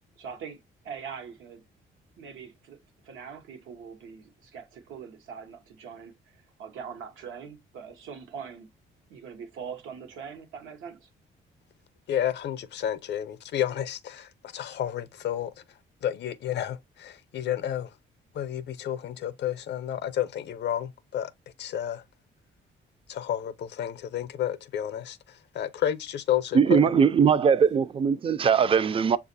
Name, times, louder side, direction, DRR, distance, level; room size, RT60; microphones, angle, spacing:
voice 1, 0.2-1.6 2.2-2.8 3.0-8.7 9.1-11.1, right 6 dB, 90° right, 0.9 m, -42 dB
voice 2, 12.1-15.5 16.0-17.9 18.3-21.3 21.6-22.0 23.1-26.8, left 10 dB, 60° left, 0.5 m, -31 dB
voice 3, 26.5-29.2, right 6 dB, 30° right, 0.3 m, -20 dB
6.6 x 2.4 x 2.5 m
cardioid pair, 90°, 20 cm